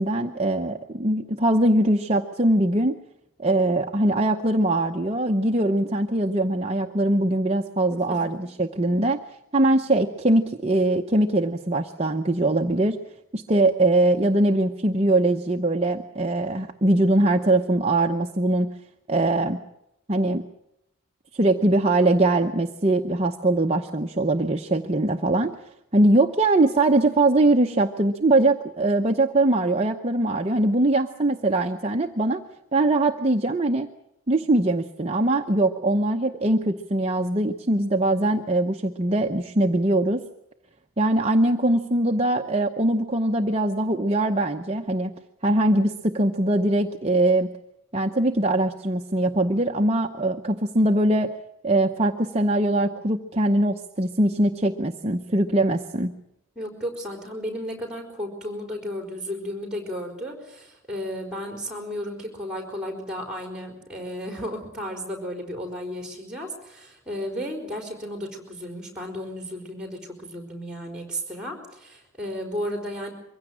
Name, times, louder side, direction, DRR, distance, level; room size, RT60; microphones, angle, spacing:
voice 1, 0.0-3.0 3.4-9.2 9.5-13.0 13.3-18.7 19.1-19.6 20.1-20.4 21.3-25.5 25.9-32.4 32.7-33.9 34.3-40.2 41.0-45.1 45.4-47.5 47.9-51.3 51.6-56.1, right 2 dB, 30° right, 4 dB, 0.8 m, -22 dB
voice 2, 56.6-73.1, equal, 5° right, 3 dB, 4.4 m, -34 dB
23.5 x 16.0 x 8.7 m, 0.84 s
head